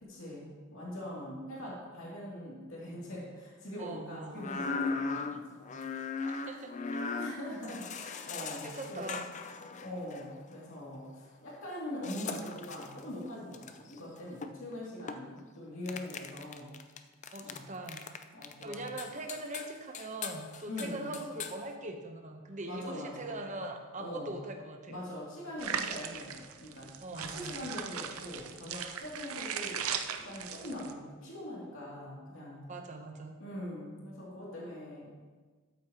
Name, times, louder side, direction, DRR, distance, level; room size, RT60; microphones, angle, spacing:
voice 1, 0.0-5.6 7.2-9.2 9.8-16.8 17.4-17.7 18.3-18.8 20.7-21.2 22.7-23.4 24.0-24.4 24.9-29.9 30.1-32.6 33.4-35.1, left 1 dB, 65° left, -6 dB, 2.6 m, -42 dB
voice 2, 3.8-4.4 6.3-6.7 8.6-9.2 17.3-18.0 18.6-25.0 27.0-27.6 32.7-33.4, right 2 dB, 35° right, 3 dB, 0.9 m, -41 dB
sound 1, 4.4-10.3 12.0-15.4 15.9-17.6 17.9-21.6, left 4 dB, 35° left, 0.4 m, -39 dB
sound 2, 25.6-30.9, right 8 dB, 80° right, 0.6 m, -38 dB
13.0 x 8.6 x 2.9 m, 1.4 s
head